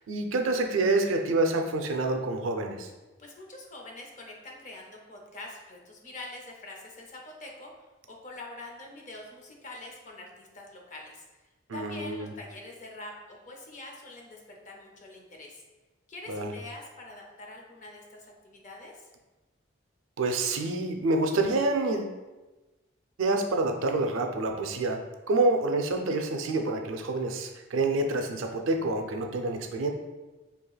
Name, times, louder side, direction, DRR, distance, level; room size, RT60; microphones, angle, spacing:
voice 1, 0.1-2.9 11.7-12.3 16.3-16.5 20.2-22.2 23.2-25.0 25.3-29.9, right 2 dB, 85° right, 4 dB, 0.5 m, -27 dB
voice 2, 3.2-7.7 8.1-11.2 11.7-15.6 16.1-19.1, left 2 dB, 40° left, 0 dB, 0.5 m, -45 dB
4.7 x 2.9 x 2.3 m, 1.1 s
head